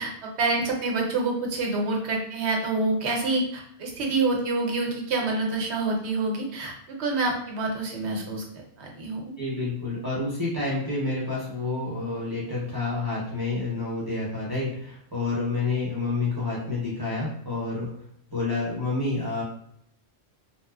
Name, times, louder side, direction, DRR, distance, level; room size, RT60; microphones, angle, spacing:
voice 1, 0.0-6.7 7.0-8.4 8.8-9.3, right 3 dB, 80° right, 0 dB, 1.0 m, -27 dB
voice 2, 9.4-17.9 18.3-19.4, left 3 dB, 25° right, -8 dB, 0.7 m, -29 dB
3.1 x 2.1 x 2.3 m, 0.69 s
omnidirectional pair, 1.1 m